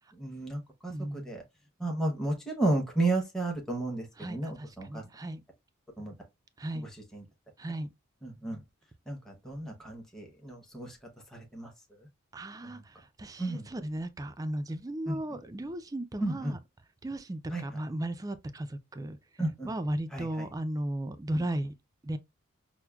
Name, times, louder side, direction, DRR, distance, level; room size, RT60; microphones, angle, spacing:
voice 1, 0.2-1.4 1.8-5.0 6.0-6.1 7.1-7.2 8.2-8.6 9.1-11.0 11.3-11.7 12.6-12.7 13.4-13.7 15.1-15.2 16.2-16.5 17.5-17.6 19.4-19.7 20.1-20.5, right 2 dB, ahead, 0.8 m, -32 dB
voice 2, 0.9-1.3 4.2-5.4 6.6-6.9 7.6-7.9 12.3-16.6 17.0-19.2 19.6-21.7 22.0-22.2, right 1 dB, 15° right, 0.3 m, -36 dB
5.8 x 2.1 x 2.2 m
head